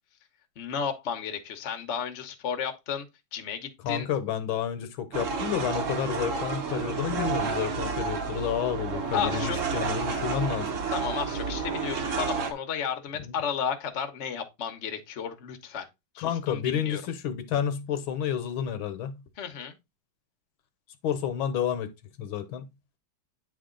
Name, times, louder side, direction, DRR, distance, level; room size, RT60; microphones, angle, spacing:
voice 1, 0.6-3.1 3.3-4.1 9.1-9.6 10.9-15.8 16.1-17.1 19.4-19.7, left 7 dB, 45° left, 0.9 m, -33 dB
voice 2, 3.8-10.7 13.2-13.3 16.2-19.1 21.0-21.9 22.2-22.7, left 9 dB, 70° left, 1.6 m, -30 dB
sound 1, 5.1-12.5, right 5 dB, 45° right, 1.1 m, -30 dB
9.4 x 3.6 x 3.8 m
omnidirectional pair, 2.3 m